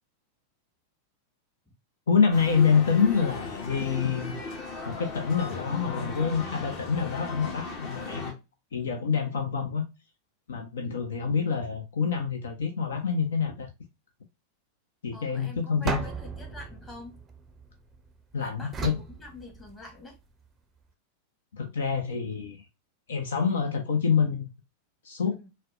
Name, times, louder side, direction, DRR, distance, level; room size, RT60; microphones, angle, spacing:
voice 1, 2.1-4.4 4.8-8.4 8.7-9.8 10.5-13.7 15.0-16.0 18.3-19.0 21.5-22.6 23.1-24.5 25.0-25.3, left 6 dB, 65° left, 0.5 m, -26 dB
sound 1, 2.3-8.3, left 4 dB, 40° left, 1.0 m, -37 dB
voice 2, 15.1-17.2 18.4-20.2 25.3-25.5, left 2 dB, 15° left, 1.2 m, -46 dB
sound 2, 15.9-18.1 18.7-20.1, right 4 dB, 20° right, 0.5 m, -36 dB
4.1 x 2.1 x 2.5 m
figure-of-eight pair, 90°, 0 cm